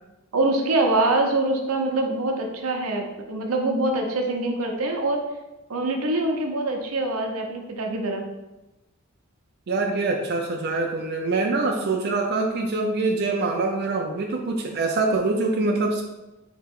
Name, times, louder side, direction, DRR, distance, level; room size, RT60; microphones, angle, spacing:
voice 1, 0.3-5.2 5.7-8.2, right 2 dB, 90° right, 2 dB, 0.7 m, -24 dB
voice 2, 9.7-16.0, right 3 dB, 50° right, 1 dB, 0.4 m, -24 dB
4.3 x 2.9 x 3.6 m, 1.0 s
head